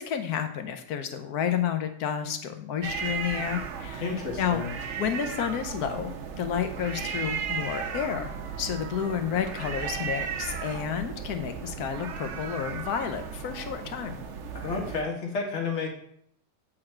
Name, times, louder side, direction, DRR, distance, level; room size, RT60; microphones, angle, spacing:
voice 1, 0.0-4.6 5.0-8.3 8.6-14.2, left 8 dB, 75° left, 8 dB, 1.2 m, -31 dB
sound 1, 2.8-15.0, right 6 dB, 60° right, 0.8 m, -35 dB
voice 2, 4.0-4.7 14.5-15.9, left 4 dB, 45° left, 0 dB, 1.5 m, -31 dB
7.7 x 4.0 x 4.4 m, 0.67 s
omnidirectional pair, 1.7 m